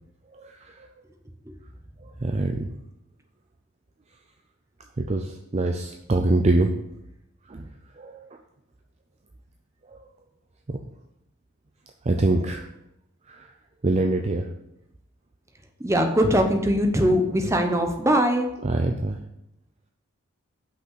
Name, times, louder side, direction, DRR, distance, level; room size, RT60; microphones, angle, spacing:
voice 1, 0.3-0.9 2.0-2.7 5.0-6.7 7.5-7.7 8.0-8.4 9.9-10.0 10.7-10.8 12.0-12.7 13.3-13.5 13.8-14.5 18.6-19.2, right 2 dB, 30° right, 4 dB, 0.5 m, -25 dB
voice 2, 15.8-18.5, equal, 15° right, 4 dB, 0.8 m, -21 dB
6.1 x 5.5 x 6.8 m, 0.83 s
head